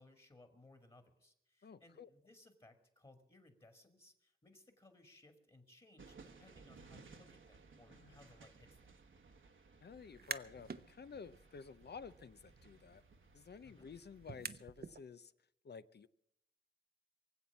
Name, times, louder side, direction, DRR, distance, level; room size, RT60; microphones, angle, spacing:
voice 1, 0.0-8.9 13.6-13.9, left 2 dB, 25° left, 2.1 m, -63 dB
voice 2, 1.6-2.1 7.9-8.3 9.8-13.0 13.3-15.3 15.6-16.1, left 6 dB, 55° left, 0.7 m, -52 dB
sound 1, 6.0-14.4, right 4 dB, 70° right, 1.3 m, -61 dB
sound 2, 10.0-10.8 11.2-15.0, right 5 dB, 50° right, 0.8 m, -49 dB
23.5 x 7.9 x 7.2 m
cardioid pair, 60°, 21 cm